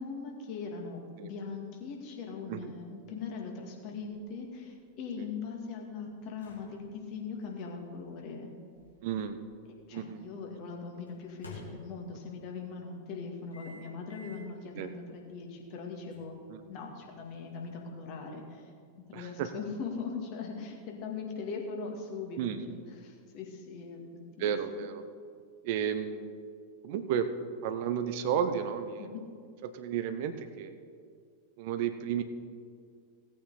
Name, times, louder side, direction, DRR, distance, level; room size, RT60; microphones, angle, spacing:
voice 1, 0.0-8.5 9.9-16.4 16.7-18.6 19.1-22.6 22.9-24.1 24.4-24.9 29.0-29.2, left 5 dB, 45° left, 1 dB, 2.1 m, -40 dB
sound 1, 4.0-10.0 11.1-12.4 13.5-14.5 15.0-15.2 16.1-17.7, left 3 dB, 75° left, 2.4 m, -54 dB
voice 2, 9.0-9.4 9.9-10.2 14.7-14.9 16.5-16.6 19.1-19.5 22.4-22.7 24.4-25.0 25.6-26.4 26.8-27.3 27.6-29.1 29.6-30.7 31.6-32.2, right 8 dB, 50° right, 10 dB, 0.7 m, -32 dB
17.0 x 8.4 x 4.1 m, 2.1 s
figure-of-eight pair, 90°, 0 cm